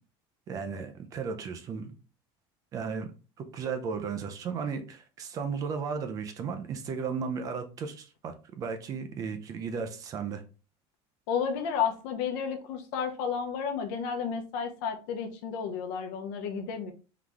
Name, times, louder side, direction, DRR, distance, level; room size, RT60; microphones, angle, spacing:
voice 1, 0.5-1.9 2.7-3.1 3.4-10.4, right 5 dB, 25° right, 7 dB, 0.5 m, -35 dB
voice 2, 11.3-16.9, left 7 dB, 65° left, 5 dB, 0.9 m, -32 dB
3.9 x 3.1 x 3.4 m, 0.34 s
cardioid pair, 180°, 13 cm